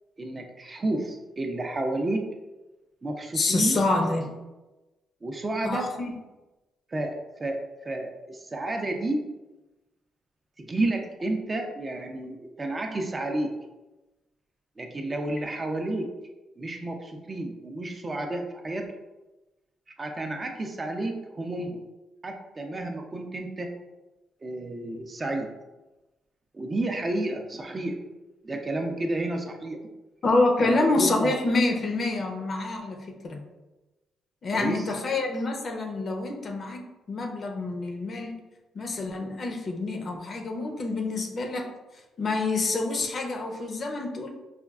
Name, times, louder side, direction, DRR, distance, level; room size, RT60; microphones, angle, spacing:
voice 1, 0.2-2.3 3.0-3.8 5.2-5.9 6.9-9.3 10.6-13.5 14.8-16.1 16.6-18.8 20.0-21.8 22.2-23.7 24.4-25.5 26.5-28.0 28.4-29.8 30.6-31.3 34.5-34.9, right 2 dB, 30° right, 3 dB, 0.5 m, -31 dB
voice 2, 3.3-4.3 5.6-6.2 30.2-33.4 34.4-38.3 38.7-41.7 42.2-44.3, left 2 dB, 45° left, 3 dB, 0.6 m, -27 dB
4.9 x 2.3 x 2.3 m, 1.1 s
cardioid pair, 90°, 0 cm